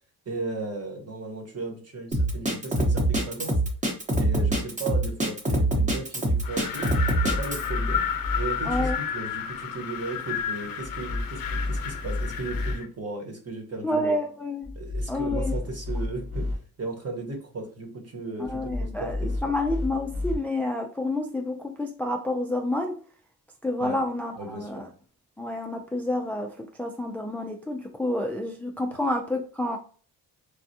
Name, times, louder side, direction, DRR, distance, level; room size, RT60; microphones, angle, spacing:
voice 1, 0.3-3.6 4.2-6.9 7.2-8.1 8.3-14.2 14.7-16.5 16.8-19.4 23.8-24.0 24.4-24.8, right 3 dB, 45° right, 2 dB, 1.1 m, -36 dB
Drum kit, 2.1-7.7, right 1 dB, 20° right, 0.9 m, -24 dB
Wind, 6.4-12.9, left 8 dB, 70° left, 0.6 m, -32 dB
sound 1, 7.0-8.9 10.8-12.7 14.6-16.5 18.4-20.4, left 2 dB, 85° right, 1.2 m, -31 dB
voice 2, 8.7-9.0 13.8-14.7 15.1-15.5 18.4-23.0 23.6-24.9 25.4-29.8, left 1 dB, 5° left, 2 dB, 0.3 m, -29 dB
3.3 x 2.3 x 2.7 m, 0.42 s
cardioid pair, 95°, 36 cm